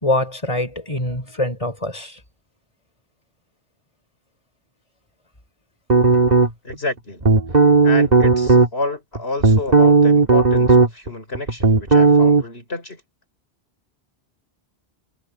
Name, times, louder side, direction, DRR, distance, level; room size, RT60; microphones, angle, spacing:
voice 1, 0.0-2.2, left 1 dB, 30° left, 5.2 m, -24 dB
sound 1, 5.9-6.7 7.2-8.7 9.2-11.1 11.3-12.4, right 4 dB, 40° right, 2.3 m, -14 dB
voice 2, 6.6-7.2 7.8-13.0, left 2 dB, 70° left, 4.9 m, -29 dB
omnidirectional pair, 1.1 m